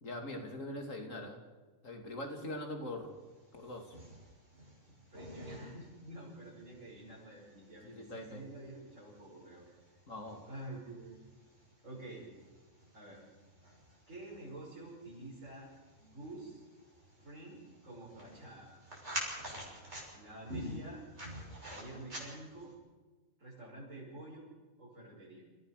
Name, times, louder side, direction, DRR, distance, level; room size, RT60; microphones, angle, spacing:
voice 1, 0.0-1.4 1.8-3.2 3.5-4.0 7.8-8.5 10.1-10.5, left 1 dB, 85° left, 4 dB, 3.2 m, -42 dB
sound 1, 3.3-22.7, equal, 60° right, 6.8 m, -49 dB
voice 2, 4.9-9.7 10.5-11.2 11.8-12.3 12.9-13.2 14.1-15.7 16.0-16.6 17.2-18.8 19.4-21.0 21.7-22.7 23.4-24.5 24.8-25.4, right 2 dB, 80° right, -7 dB, 6.8 m, -49 dB
29.0 x 16.0 x 6.6 m, 1.3 s
omnidirectional pair, 1.3 m